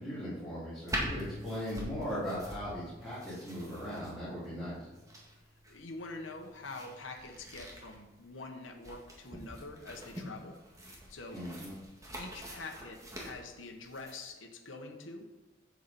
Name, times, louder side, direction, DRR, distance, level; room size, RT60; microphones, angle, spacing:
voice 1, 0.0-4.9 11.3-11.8, equal, ahead, -13 dB, 3.0 m, -39 dB
sound 1, 0.9-14.1, equal, 15° right, 1.8 m, -44 dB
Bass guitar, 0.9-5.4 5.8-7.2, left 1 dB, 40° right, 0.7 m, -52 dB
voice 2, 5.7-10.5 11.1-11.4 12.2-15.2, left 3 dB, 75° left, 2 dB, 1.2 m, -45 dB
8.4 x 7.6 x 4.3 m, 1.1 s
head